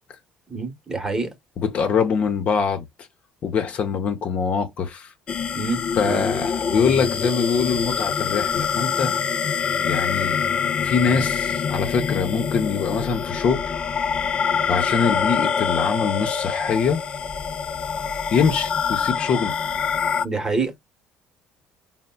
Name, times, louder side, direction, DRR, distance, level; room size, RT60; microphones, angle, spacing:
voice 1, 0.5-1.3 5.5-5.8 6.1-6.2 20.2-20.7, right 4 dB, 20° right, 1.0 m, -26 dB
voice 2, 1.6-2.9 3.4-5.1 5.9-9.1 9.8-10.4 10.8-13.6 14.7-17.0 18.3-19.5, left 6 dB, 55° left, 0.7 m, -23 dB
sound 1, 5.3-20.2, left 6 dB, 40° left, 0.3 m, -25 dB
4.0 x 2.1 x 2.2 m
supercardioid pair, 85°, 3 cm